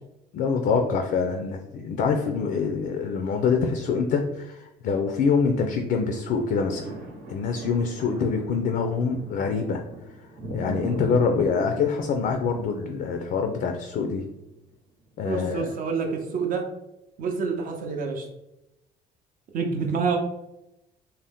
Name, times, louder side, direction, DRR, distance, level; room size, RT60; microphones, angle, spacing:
voice 1, 0.3-6.9 7.3-9.8 10.5-14.2 15.2-15.7, left 5 dB, 60° left, 4 dB, 0.4 m, -25 dB
sound 1, 6.3-14.5 15.0-15.1, right 2 dB, 75° right, 1.0 m, -39 dB
voice 2, 15.2-16.6 17.2-18.3 19.5-20.2, right 5 dB, 55° right, 2 dB, 0.6 m, -27 dB
2.7 x 2.0 x 3.4 m, 0.89 s
cardioid pair, 110°, 17 cm